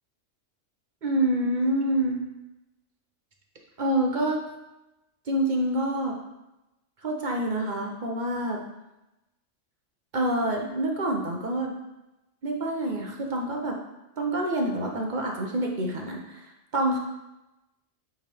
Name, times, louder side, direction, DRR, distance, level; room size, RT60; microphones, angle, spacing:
voice 1, 1.0-2.2 3.8-4.4 5.3-6.2 7.0-8.6 10.1-11.7 12.4-13.8 14.2-17.0, right 1 dB, 45° right, 1 dB, 0.7 m, -27 dB
8.0 x 3.6 x 3.4 m, 0.95 s
omnidirectional pair, 1.3 m